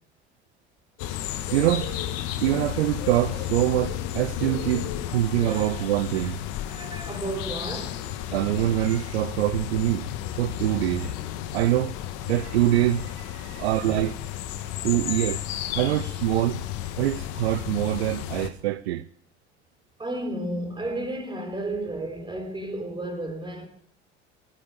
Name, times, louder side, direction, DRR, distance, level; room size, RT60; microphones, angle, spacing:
sound 1, 1.0-18.5, left 11 dB, 55° left, 1.6 m, -33 dB
voice 1, 1.5-1.9 2.4-6.4 8.3-10.1 10.4-11.1 11.5-12.0 12.3-14.1 14.8-15.4 15.8-16.6 17.0-19.1, right 14 dB, 65° right, 0.6 m, -24 dB
voice 2, 5.0-5.8 6.7-8.1 13.5-14.1 14.6-15.4 15.9-16.2 20.0-23.7, right 1 dB, 15° right, 4.0 m, -34 dB
18.0 x 9.8 x 7.2 m
figure-of-eight pair, 65°, 35 cm